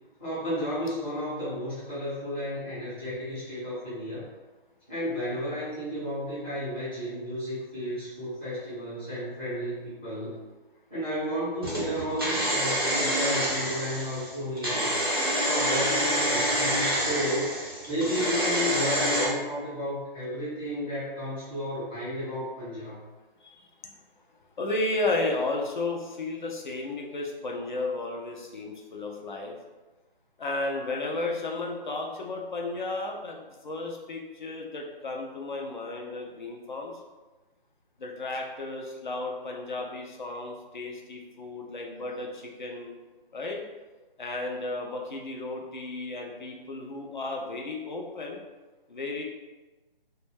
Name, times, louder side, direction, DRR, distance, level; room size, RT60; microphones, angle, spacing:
voice 1, 0.2-4.2 4.9-10.3 10.9-14.9 15.4-17.6 17.9-23.0, equal, 10° left, -15 dB, 0.7 m, -32 dB
sound 1, 11.6-19.3, equal, 25° right, 0.4 m, -27 dB
voice 2, 24.6-29.6 30.4-37.0 38.0-42.9 43.3-43.6 44.2-48.4 48.9-49.2, left 2 dB, 50° left, 0 dB, 0.5 m, -33 dB
2.2 x 2.1 x 3.3 m, 1.2 s
figure-of-eight pair, 160°, 30 cm